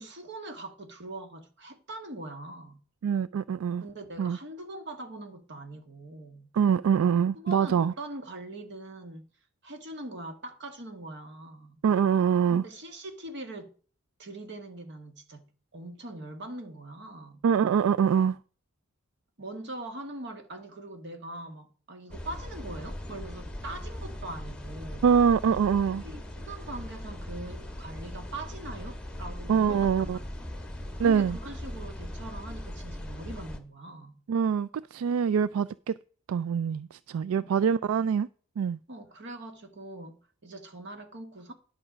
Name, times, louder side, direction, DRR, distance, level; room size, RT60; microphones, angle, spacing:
voice 1, 0.0-2.8 3.8-6.5 7.3-9.2 9.6-11.8 12.5-13.7 14.2-15.5 15.7-17.4 19.4-25.0 26.0-30.4 31.0-34.2 37.3-37.5 38.9-41.5, right 2 dB, 55° right, 1.6 m, -42 dB
voice 2, 3.0-3.8 4.2-4.4 6.5-7.9 11.8-12.6 17.4-18.4 25.0-26.0 29.5-30.2 31.0-31.4 34.3-35.9 36.3-38.3 38.6-38.8, right 7 dB, 80° right, 0.3 m, -24 dB
sound 1, 22.1-33.6, left 1 dB, 5° left, 1.2 m, -39 dB
11.0 x 6.0 x 5.0 m
head